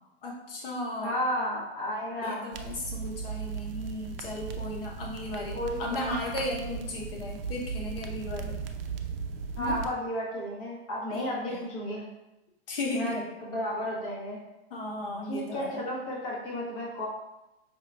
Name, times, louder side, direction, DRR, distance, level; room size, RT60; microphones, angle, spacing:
voice 1, 0.2-1.2 2.2-8.6 9.6-9.7 11.1-11.6 12.7-13.3 14.7-15.8, left 1 dB, 60° left, -1 dB, 0.7 m, -35 dB
voice 2, 1.0-2.5 5.5-6.1 6.5-6.8 9.6-12.1 12.9-13.1 13.4-14.4 15.2-17.1, equal, 25° left, -5 dB, 0.8 m, -33 dB
sound 1, 2.5-9.9, right 6 dB, 60° right, 0.4 m, -37 dB
5.1 x 2.2 x 2.4 m, 0.96 s
hypercardioid pair, 170°, 32 cm